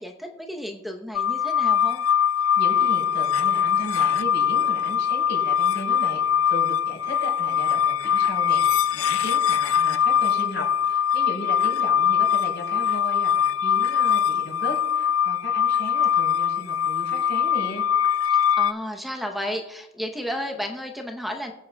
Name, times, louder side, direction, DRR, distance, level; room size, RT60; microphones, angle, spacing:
voice 1, 0.0-2.0 18.3-21.5, equal, ahead, 3 dB, 0.8 m, -32 dB
sound 1, 1.1-18.7, left 8 dB, 80° left, 0.5 m, -22 dB
voice 2, 2.6-17.8, left 1 dB, 55° left, -2 dB, 4.5 m, -36 dB
21.5 x 8.5 x 2.3 m, 0.93 s
head